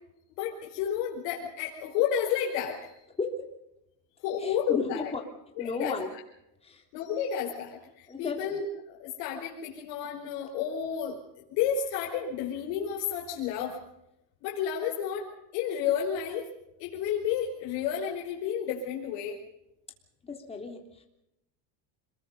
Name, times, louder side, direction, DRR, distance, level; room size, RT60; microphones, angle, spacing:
voice 1, 0.4-2.9 4.2-5.1 5.6-5.9 6.9-11.2 11.5-13.8 14.4-16.5 16.8-19.4, left 8 dB, 65° left, -3 dB, 5.1 m, -31 dB
voice 2, 4.4-5.2 5.6-6.1 6.6-6.8 8.1-8.4 20.2-21.0, left 4 dB, 15° left, 2 dB, 3.3 m, -34 dB
27.0 x 22.0 x 5.5 m, 0.86 s
cardioid pair, 150°, 47 cm